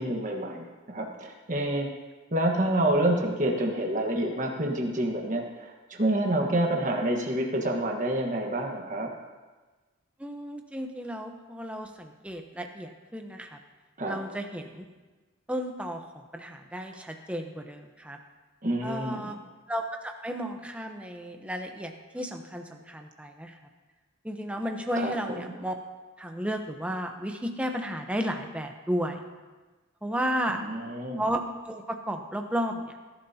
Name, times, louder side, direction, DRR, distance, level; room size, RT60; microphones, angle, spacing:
voice 1, 0.0-1.9 2.3-9.1 14.0-14.2 18.6-19.3 25.0-25.5 30.5-31.2, right 1 dB, 40° right, 0 dB, 1.5 m, -28 dB
voice 2, 10.2-13.6 14.1-14.8 15.5-18.2 18.8-19.4 19.7-23.6 24.2-25.7 26.2-29.2 30.0-30.6 31.2-32.9, equal, 5° right, 4 dB, 0.8 m, -33 dB
19.5 x 11.5 x 2.9 m, 1.3 s
head